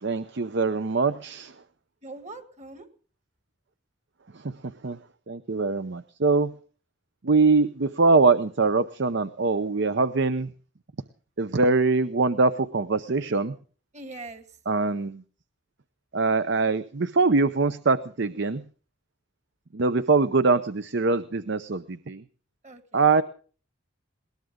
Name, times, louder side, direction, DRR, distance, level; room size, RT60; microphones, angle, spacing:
voice 1, 0.0-1.5 4.3-4.6 4.8-5.0 5.3-6.5 7.2-10.5 11.4-13.6 14.7-15.2 16.1-18.6 19.7-22.2 22.9-23.2, right 3 dB, 60° right, 13 dB, 0.7 m, -23 dB
voice 2, 2.0-2.9 13.9-14.6 22.6-23.2, right 2 dB, 35° right, 10 dB, 1.8 m, -42 dB
21.0 x 18.5 x 3.7 m, 0.40 s
head